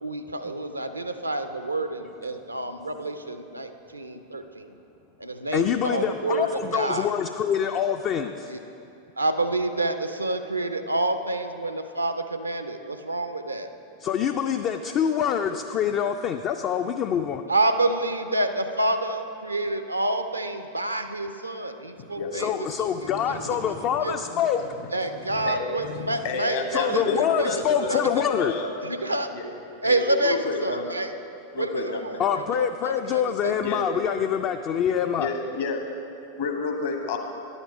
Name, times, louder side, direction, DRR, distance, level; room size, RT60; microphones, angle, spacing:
voice 1, 0.0-4.8 5.2-7.1 8.5-8.6 9.2-13.7 17.5-22.5 22.8-24.2 24.9-28.0 28.8-29.3 29.8-31.1 31.6-33.6 34.1-34.2, right 2 dB, 85° right, 9 dB, 0.5 m, -28 dB
voice 2, 5.5-8.5 14.0-17.4 22.3-24.6 26.7-28.5 32.2-35.3, left 8 dB, 35° left, 6 dB, 0.3 m, -25 dB
voice 3, 22.2-27.2 27.4-28.7 29.3-29.4 29.8-30.9 31.5-32.2 33.6-33.8 35.2-35.8 36.4-37.2, left 4 dB, 55° left, 3 dB, 1.2 m, -32 dB
10.5 x 7.1 x 5.1 m, 2.7 s
figure-of-eight pair, 90°, 0 cm